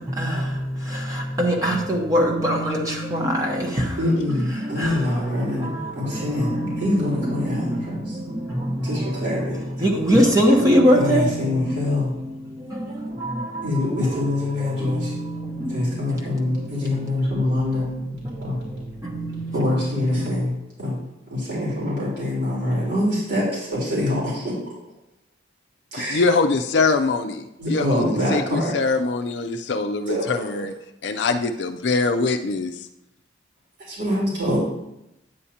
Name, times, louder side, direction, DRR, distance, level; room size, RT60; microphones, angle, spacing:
voice 1, 0.0-20.3, equal, 20° right, -1 dB, 1.0 m, -25 dB
voice 2, 4.0-8.2 8.8-9.6 10.9-12.1 13.6-15.1 15.7-18.0 18.4-18.6 19.5-20.5 20.8-21.0 21.3-24.5 25.9-26.2 27.6-28.7 30.1-30.2 33.9-34.6, left 1 dB, 65° right, -6 dB, 3.6 m, -24 dB
voice 3, 26.0-30.7 31.0-32.8, left 3 dB, 65° left, 5 dB, 0.5 m, -23 dB
9.5 x 8.4 x 2.8 m, 0.86 s
head